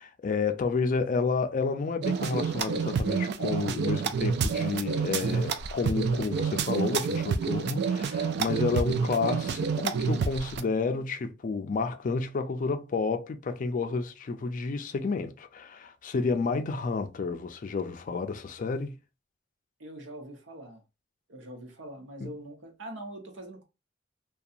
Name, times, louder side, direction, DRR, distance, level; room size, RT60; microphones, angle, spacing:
voice 1, 0.0-18.9, left 4 dB, 45° left, 0.4 m, -30 dB
sound 1, 2.0-10.6, right 6 dB, 60° right, 0.3 m, -28 dB
voice 2, 19.8-20.8 21.3-23.6, right 1 dB, 85° right, 0.9 m, -43 dB
2.7 x 2.2 x 2.4 m
head